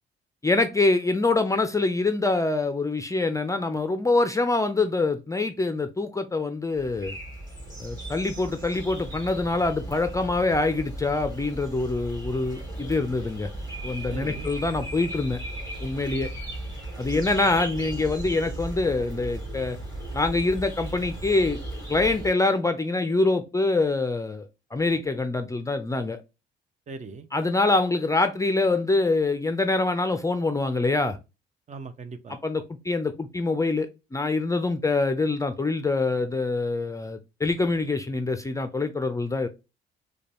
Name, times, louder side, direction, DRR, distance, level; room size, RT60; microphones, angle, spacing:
voice 1, 0.4-7.1 7.8-13.5 13.8-15.4 15.8-16.3 17.0-19.8 20.1-21.6 21.9-24.4 24.7-26.2 27.3-31.2 32.4-39.5, left 3 dB, 15° left, 0.4 m, -25 dB
sound 1, 6.7-22.3, right 1 dB, 20° right, 2.4 m, -36 dB
voice 2, 14.1-14.5 16.1-16.3 17.1-17.3 26.9-27.3 31.7-32.4, right 4 dB, 35° right, 0.6 m, -40 dB
4.9 x 2.2 x 2.9 m
cardioid pair, 90°, 20 cm